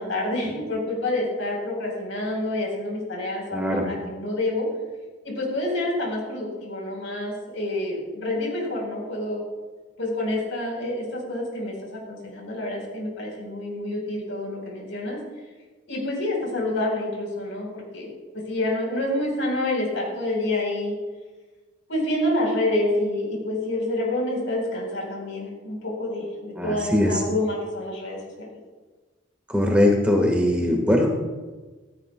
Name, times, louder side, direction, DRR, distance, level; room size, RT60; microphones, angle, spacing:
voice 1, 0.0-4.7 5.2-9.4 10.0-15.2 15.9-18.1 18.5-20.9 21.9-28.5, left 1 dB, 90° left, 0 dB, 4.1 m, -28 dB
voice 2, 3.5-3.8 26.6-27.2 29.5-31.1, left 1 dB, 5° right, 1 dB, 1.4 m, -21 dB
15.5 x 13.0 x 2.3 m, 1.3 s
head